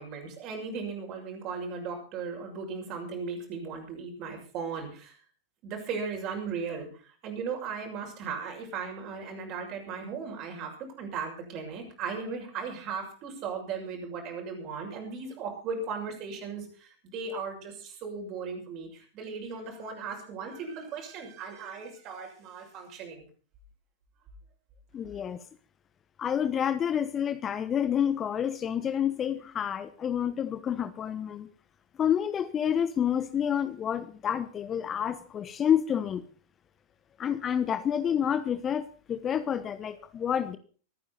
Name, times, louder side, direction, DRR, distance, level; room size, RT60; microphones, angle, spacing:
voice 1, 0.0-5.2 5.6-23.2, right 5 dB, 40° right, 2 dB, 6.6 m, -37 dB
voice 2, 24.9-25.4 26.2-31.5 32.0-36.2 37.2-40.6, left 9 dB, 25° left, 12 dB, 1.1 m, -29 dB
24.5 x 9.9 x 4.2 m, 0.40 s
figure-of-eight pair, 90°, 0 cm